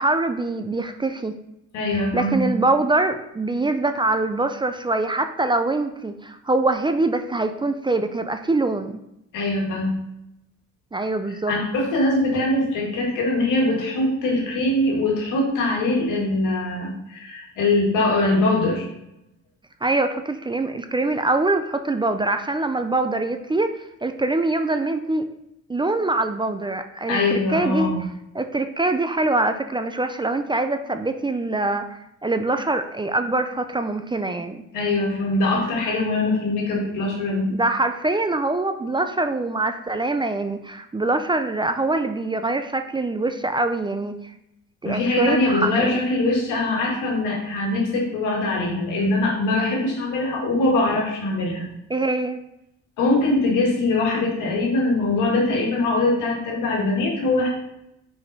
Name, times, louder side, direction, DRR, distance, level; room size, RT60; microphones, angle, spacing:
voice 1, 0.0-1.4 2.1-9.0 10.9-11.5 19.8-23.7 24.0-25.3 25.7-27.9 28.3-34.6 37.5-44.2 44.8-46.0 51.9-52.4, right 2 dB, 15° right, 8 dB, 0.4 m, -24 dB
voice 2, 1.7-2.5 9.3-10.0 11.3-18.9 27.1-28.0 34.7-37.5 44.8-51.7 53.0-57.5, left 2 dB, 90° left, -2 dB, 1.8 m, -22 dB
5.2 x 4.7 x 4.1 m, 0.84 s
cardioid pair, 90°, 30 cm